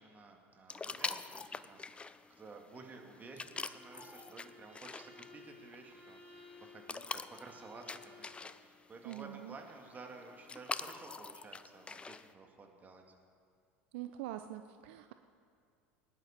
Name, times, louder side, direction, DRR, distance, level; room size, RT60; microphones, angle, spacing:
voice 1, 0.0-8.3 8.6-13.0, right 3 dB, 25° right, 2 dB, 2.0 m, -53 dB
sound 1, 0.7-12.3, left 4 dB, 15° left, 0.5 m, -46 dB
Bowed string instrument, 3.4-8.3, left 2 dB, 80° right, 4.3 m, -57 dB
voice 2, 9.0-9.5 13.9-15.1, right 13 dB, 65° right, 9 dB, 0.5 m, -44 dB
20.5 x 10.5 x 4.4 m, 2.3 s
hypercardioid pair, 75°, 7 cm